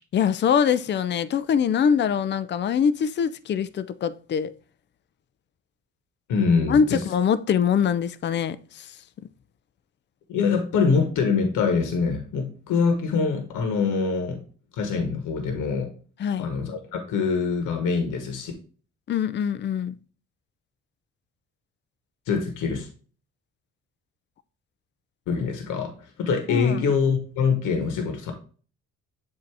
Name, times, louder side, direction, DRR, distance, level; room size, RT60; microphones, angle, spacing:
voice 1, 0.1-4.5 6.7-8.9 16.2-16.5 19.1-19.9 26.5-26.8, left 7 dB, 35° left, 0.4 m, -23 dB
voice 2, 6.3-7.0 10.3-14.4 14.7-15.9 16.4-18.5 22.3-22.9 25.3-28.3, left 5 dB, 85° left, 1.2 m, -24 dB
7.5 x 2.8 x 4.6 m
cardioid pair, 90°, 30 cm